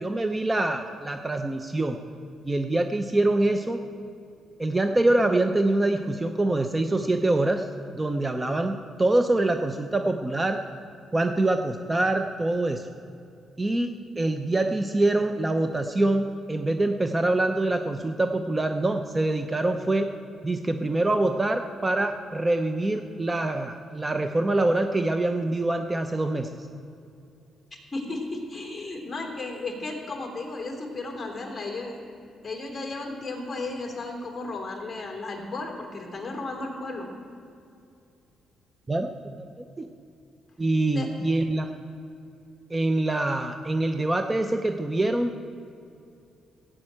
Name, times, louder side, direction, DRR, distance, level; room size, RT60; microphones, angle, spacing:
voice 1, 0.0-2.0 2.4-3.8 4.6-7.7 7.9-10.6 11.1-12.9 13.6-20.1 20.4-26.5 38.9-39.1 39.4-39.9 40.6-41.7 42.7-45.4, right 2 dB, 20° right, 6 dB, 0.7 m, -25 dB
voice 2, 27.9-32.0 32.4-37.1 40.9-41.1, left 2 dB, 25° left, 2 dB, 3.2 m, -34 dB
16.0 x 7.7 x 8.9 m, 2.5 s
cardioid pair, 90°, 0 cm